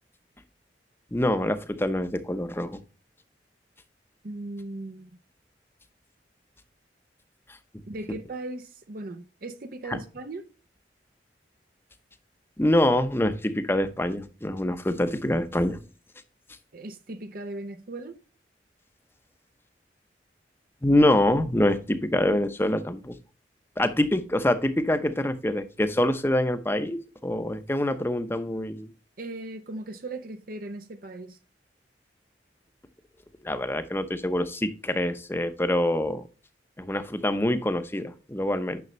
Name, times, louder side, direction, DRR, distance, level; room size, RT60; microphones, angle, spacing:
voice 1, 1.1-2.8 9.9-10.0 12.6-15.8 20.8-23.2 23.8-28.9 33.4-36.2 36.8-38.8, left 1 dB, 15° left, 0.8 m, -25 dB
voice 2, 4.2-5.2 7.9-10.5 16.7-18.2 29.2-31.4, right 2 dB, 55° right, 0.7 m, -38 dB
9.4 x 6.4 x 3.1 m
head